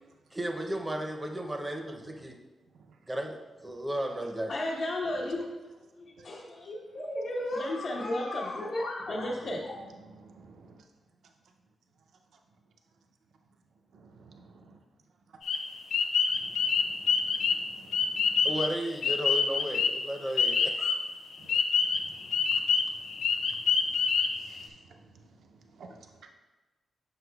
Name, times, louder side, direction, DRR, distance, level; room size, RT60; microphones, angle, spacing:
voice 1, 0.3-2.4 3.1-4.5 18.4-21.0, right 1 dB, 10° right, 3 dB, 0.5 m, -34 dB
voice 2, 4.5-5.4 6.0-9.8, left 1 dB, 65° left, -7 dB, 1.1 m, -33 dB
voice 3, 10.0-10.8 13.9-14.8 16.4-18.5 21.4-23.6 24.0-24.1 24.4-25.0 25.8-26.0, right 3 dB, 80° right, 4 dB, 0.5 m, -54 dB
sound 1, 15.4-21.1 21.5-24.7, left 5 dB, 85° left, 0.4 m, -27 dB
7.8 x 5.6 x 2.3 m, 1.2 s
wide cardioid pair, 145°, 0 cm